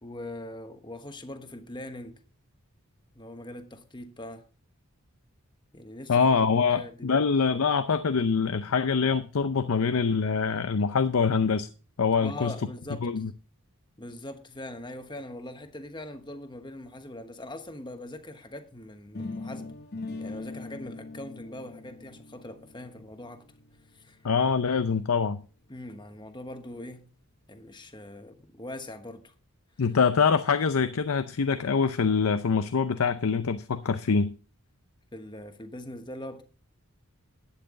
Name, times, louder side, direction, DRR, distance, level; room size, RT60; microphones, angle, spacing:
voice 1, 0.0-2.2 3.1-4.5 5.7-7.2 12.2-13.1 14.0-19.7 20.2-23.4 23.9-24.2 25.7-27.1 27.5-29.3 35.1-36.4, left 1 dB, 20° left, 1.2 m, -42 dB
voice 2, 6.1-11.7 12.0-12.5 13.0-13.3 24.2-25.4 29.8-34.3, left 5 dB, 70° left, 0.6 m, -24 dB
sound 1, 19.1-25.1, left 3 dB, 45° left, 0.9 m, -41 dB
11.5 x 9.1 x 3.7 m
head